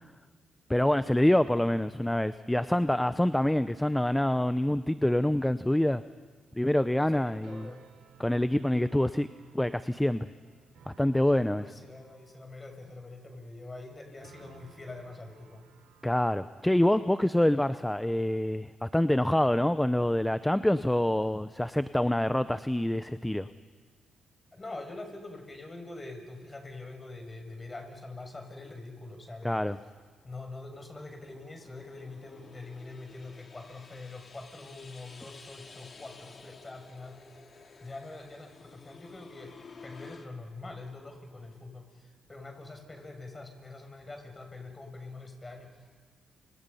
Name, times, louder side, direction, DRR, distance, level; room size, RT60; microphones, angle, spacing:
voice 1, 0.7-6.0 6.5-7.7 8.2-9.3 9.5-10.3 10.9-11.6 16.0-23.5 29.4-29.8, left 1 dB, 10° left, 13 dB, 0.8 m, -26 dB
voice 2, 7.1-7.9 11.6-15.7 24.5-29.7 30.2-37.3 37.8-39.6 39.8-46.0, left 2 dB, 25° left, 4 dB, 6.9 m, -44 dB
sound 1, 7.4-17.6, right 6 dB, 80° right, 4.1 m, -59 dB
sound 2, 30.2-40.3, left 4 dB, 50° left, 2.6 m, -53 dB
29.5 x 27.5 x 5.7 m, 1.5 s
supercardioid pair, 55°, 0 cm